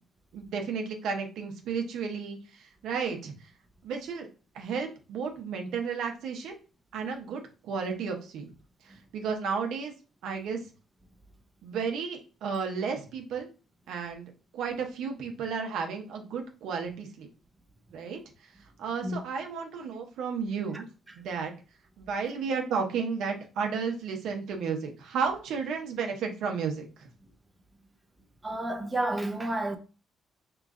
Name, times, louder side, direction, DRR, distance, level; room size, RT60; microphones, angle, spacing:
voice 1, 0.3-3.3 3.8-4.3 4.5-6.5 6.9-8.5 8.8-9.9 10.2-10.6 11.6-13.5 13.9-17.3 17.9-18.2 18.8-20.9 21.1-21.5 22.0-27.1, right 5 dB, 85° right, 0.7 m, -33 dB
voice 2, 28.4-29.8, right 1 dB, 20° right, 0.5 m, -30 dB
3.0 x 2.4 x 3.6 m
cardioid pair, 90°, 0 cm